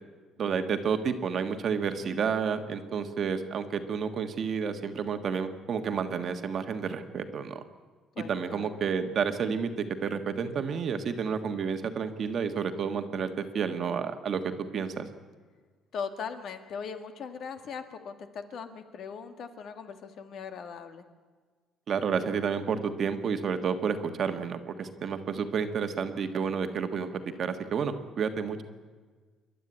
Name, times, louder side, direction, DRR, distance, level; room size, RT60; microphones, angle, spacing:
voice 1, 0.4-7.6 8.2-15.1 21.9-28.6, right 6 dB, 40° right, 7 dB, 1.5 m, -30 dB
voice 2, 8.2-8.7 15.9-21.1, left 6 dB, 50° left, 7 dB, 1.9 m, -39 dB
27.5 x 12.0 x 9.7 m, 1.5 s
cardioid pair, 165°, 0 cm